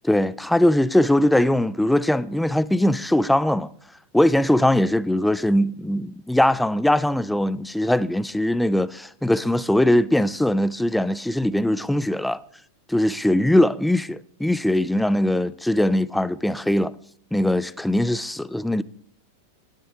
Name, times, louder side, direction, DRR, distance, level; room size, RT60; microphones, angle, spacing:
voice 1, 0.0-3.7 4.1-12.4 12.9-16.9 17.3-18.8, left 1 dB, 5° left, 0.4 m, -21 dB
19.0 x 6.6 x 3.8 m
figure-of-eight pair, 90°, 0 cm